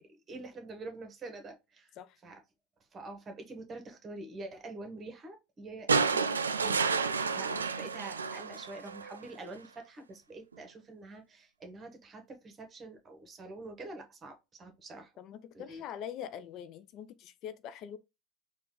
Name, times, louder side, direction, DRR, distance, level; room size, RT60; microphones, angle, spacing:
voice 1, 0.1-1.9 2.2-2.4 2.9-6.8 7.1-15.1 15.5-15.9, right 2 dB, 30° right, 1.4 m, -46 dB
sound 1, 5.9-9.2 10.5-10.6, right 5 dB, 90° right, 0.3 m, -30 dB
voice 2, 15.2-18.0, left 9 dB, 50° left, 0.4 m, -43 dB
4.4 x 2.5 x 3.7 m
hypercardioid pair, 80°, 0 cm